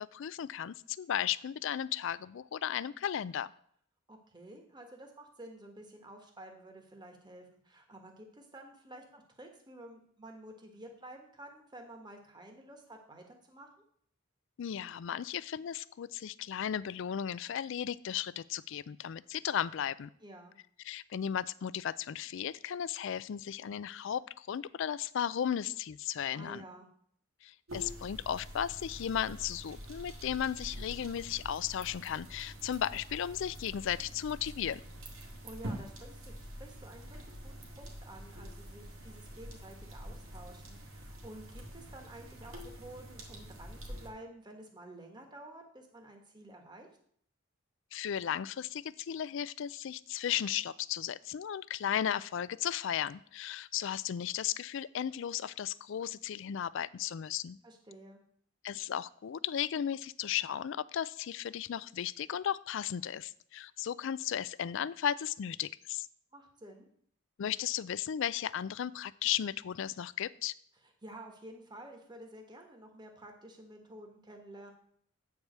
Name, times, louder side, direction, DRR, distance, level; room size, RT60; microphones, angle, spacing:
voice 1, 0.0-3.5 14.6-20.1 20.9-26.6 27.4-34.8 47.9-57.6 58.6-66.1 67.4-70.5, left 9 dB, 60° left, 18 dB, 0.3 m, -35 dB
voice 2, 4.1-13.7 20.2-20.5 26.3-26.9 35.2-46.9 57.6-58.2 66.3-66.9 71.0-74.7, right 1 dB, 20° right, 3 dB, 1.3 m, -51 dB
sound 1, 27.7-44.1, equal, 70° right, 1.9 m, -46 dB
8.6 x 4.7 x 6.6 m, 0.62 s
head